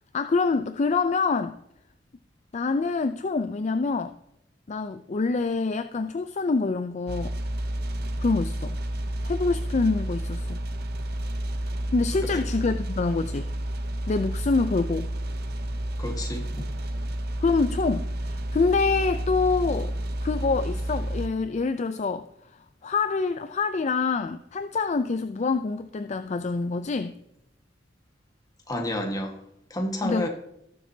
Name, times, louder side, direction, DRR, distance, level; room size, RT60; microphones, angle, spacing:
voice 1, 0.1-1.6 2.5-4.1 4.7-7.3 8.2-8.8 9.2-10.6 11.9-13.5 14.1-15.1 17.4-19.9 20.2-22.3 22.8-27.1 30.0-30.3, left 4 dB, 40° left, 10 dB, 0.4 m, -26 dB
sound 1, 7.1-21.3, right 1 dB, 60° right, 0.8 m, -30 dB
voice 2, 16.0-16.7 28.7-29.4 29.7-30.3, left 1 dB, 20° left, 3 dB, 1.5 m, -30 dB
18.0 x 7.2 x 2.7 m, 0.81 s
head